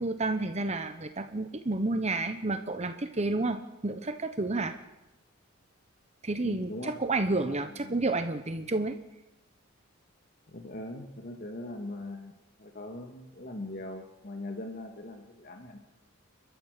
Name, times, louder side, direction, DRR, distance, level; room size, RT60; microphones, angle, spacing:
voice 1, 0.0-4.8 6.2-9.0, right 2 dB, 30° right, 8 dB, 1.0 m, -30 dB
voice 2, 6.4-7.0 7.5-8.0 10.5-12.3 12.6-15.8, left 1 dB, 45° left, 3 dB, 1.9 m, -41 dB
30.0 x 13.0 x 6.8 m, 0.96 s
head